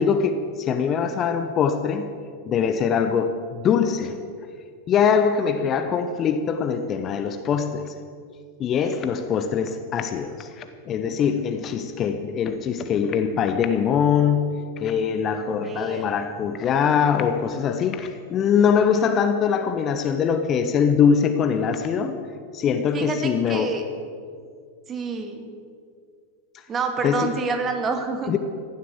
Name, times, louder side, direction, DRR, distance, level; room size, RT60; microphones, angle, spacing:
voice 1, 0.0-2.1 2.5-4.2 4.9-7.9 8.6-22.2 22.5-23.8 27.0-27.3 28.3-28.4, left 7 dB, 30° left, 9 dB, 0.9 m, -22 dB
voice 2, 15.6-16.2 22.9-23.8 24.9-25.5 26.7-28.3, right 4 dB, 25° right, 6 dB, 2.0 m, -28 dB
15.5 x 11.5 x 7.6 m, 2.2 s
figure-of-eight pair, 90°, 0 cm